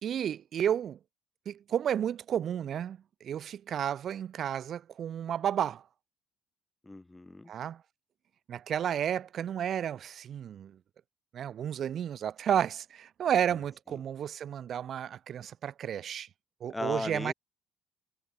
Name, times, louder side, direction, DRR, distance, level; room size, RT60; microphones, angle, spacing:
voice 1, 0.0-1.0 1.5-5.8 7.5-7.8 8.5-10.8 11.3-16.3 16.6-17.3, right 9 dB, 55° right, 3.7 m, -32 dB
voice 2, 6.8-7.5 13.5-13.6 13.9-14.0 16.7-17.3, left 2 dB, 15° left, 6.6 m, -37 dB
hypercardioid pair, 60°, 0 cm